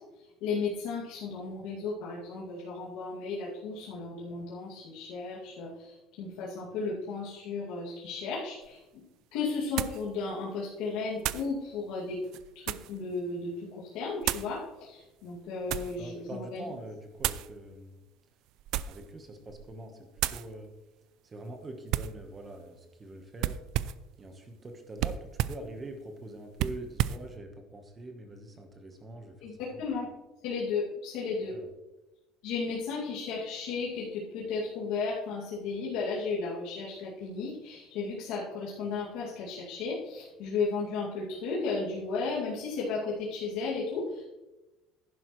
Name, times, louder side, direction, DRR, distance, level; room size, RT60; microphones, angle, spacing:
voice 1, 0.4-9.0 9.3-12.2 12.5-16.7 29.4-30.1 30.4-31.5 32.4-44.3, left 4 dB, 70° left, -6 dB, 2.3 m, -34 dB
sound 1, 8.6-8.7 9.8-10.1 11.2-11.5 12.2-13.0 14.2-14.5 15.3-16.0 17.2-17.5 18.6-19.1 19.5-19.8 20.2-20.5 21.9-22.2 23.4-24.1 25.0-25.7 26.6-27.3, right 13 dB, 60° right, 0.3 m, -32 dB
voice 2, 15.9-18.0 18.9-20.7 21.2-23.6 24.2-29.8 31.4-31.7, right 1 dB, 20° right, 5 dB, 1.2 m, -44 dB
11.0 x 10.0 x 3.1 m, 1.0 s
cardioid pair, 170°, 0 cm